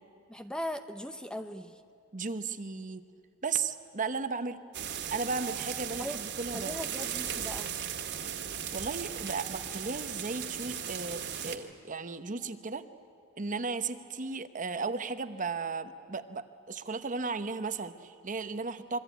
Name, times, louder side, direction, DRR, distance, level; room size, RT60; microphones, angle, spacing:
voice 1, 0.3-1.8 6.0-6.2 6.5-7.7, left 1 dB, 5° left, 8 dB, 0.7 m, -39 dB
voice 2, 2.1-3.0 3.4-4.6 5.1-6.7 8.7-12.8 13.4-19.0, right 4 dB, 35° right, 10 dB, 1.0 m, -35 dB
sound 1, 4.7-11.6, right 8 dB, 55° right, 1.9 m, -37 dB
27.0 x 23.0 x 9.4 m, 2.3 s
head